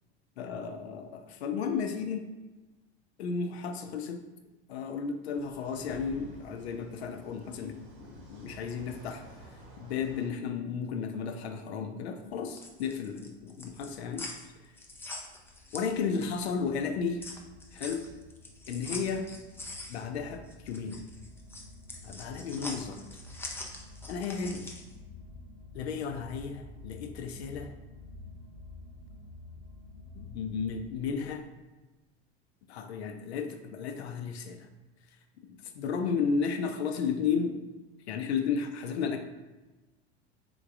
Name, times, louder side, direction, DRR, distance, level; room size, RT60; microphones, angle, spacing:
voice 1, 0.4-2.2 3.2-4.2 4.7-9.2 9.8-14.3 15.7-17.3 17.7-18.1 18.7-19.3 19.9-21.0 22.0-23.0 24.1-24.7 25.7-27.7 30.1-31.4 32.7-34.7 35.5-37.6 38.1-39.2, left 6 dB, 75° left, 6 dB, 0.5 m, -33 dB
sound 1, 5.3-10.3, right 1 dB, 50° right, 1.0 m, -51 dB
sound 2, 12.5-16.5 16.8-24.9, left 2 dB, 5° left, 0.4 m, -44 dB
sound 3, 14.2-31.3, left 2 dB, 80° right, 0.7 m, -50 dB
3.8 x 3.5 x 2.4 m, 1.1 s
figure-of-eight pair, 80°, 33 cm